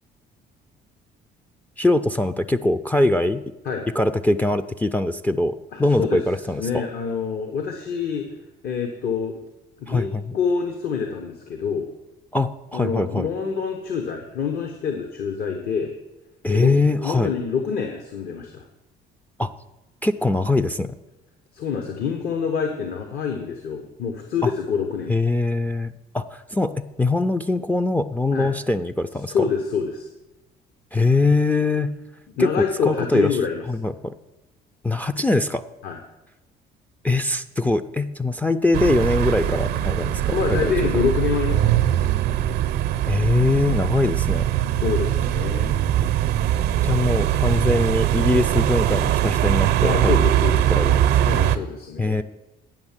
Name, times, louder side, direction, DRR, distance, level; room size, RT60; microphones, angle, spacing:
voice 1, 1.8-3.4 4.0-6.8 9.9-10.4 12.3-13.3 16.4-17.3 19.4-19.5 20.0-20.9 24.4-24.5 25.1-29.4 30.9-32.0 32.4-33.3 33.7-34.1 34.8-35.6 37.0-41.0 43.1-44.5 46.8-50.1 50.7-51.1 52.0-52.2, left 2 dB, 10° left, 7 dB, 0.4 m, -22 dB
voice 2, 5.7-6.2 6.6-8.2 8.6-9.3 9.8-10.1 10.3-11.9 12.7-15.9 16.5-18.6 21.5-25.1 28.3-28.5 29.3-30.1 32.4-33.6 35.8-36.0 40.3-42.1 44.8-45.8 49.8-52.2, left 6 dB, 65° left, 4 dB, 1.1 m, -26 dB
sound 1, 38.7-51.6, right 12 dB, 75° right, 0.6 m, -21 dB
9.0 x 5.9 x 7.2 m, 1.0 s
cardioid pair, 110°, 17 cm